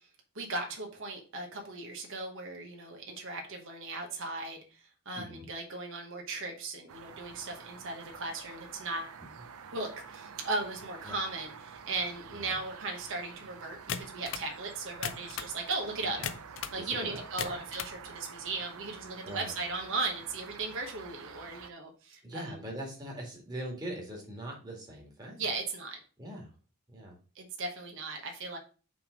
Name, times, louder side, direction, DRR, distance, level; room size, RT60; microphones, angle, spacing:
voice 1, 0.3-4.8 5.0-9.1 9.7-16.2 16.7-22.7 25.4-26.0 27.3-28.6, right 3 dB, 60° right, 2 dB, 1.2 m, -37 dB
voice 2, 5.2-5.5 11.1-11.2 12.3-12.5 16.2-16.3 16.7-17.6 19.2-19.6 22.2-25.4 26.2-26.5 26.9-27.2, right 1 dB, 20° right, -2 dB, 1.9 m, -42 dB
sound 1, 6.9-21.7, right 6 dB, 75° right, 0.6 m, -48 dB
sound 2, 13.9-14.5 14.9-15.6 16.2-16.8 17.2-18.0, left 8 dB, 60° left, 0.5 m, -37 dB
5.9 x 3.5 x 5.0 m, 0.37 s
head